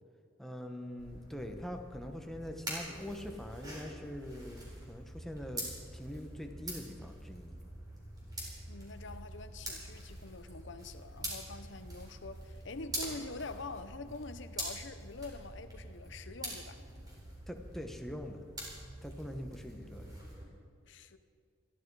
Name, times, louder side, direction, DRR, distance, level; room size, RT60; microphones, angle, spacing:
voice 1, 0.4-5.7 5.9-7.6 17.5-18.4 19.0-20.2, equal, ahead, 1.2 m, -43 dB
sound 1, 1.0-20.4, right 1 dB, 20° right, 4.0 m, -45 dB
voice 2, 8.7-16.8 20.8-21.2, left 3 dB, 60° left, 0.8 m, -45 dB
21.0 x 13.5 x 4.8 m
head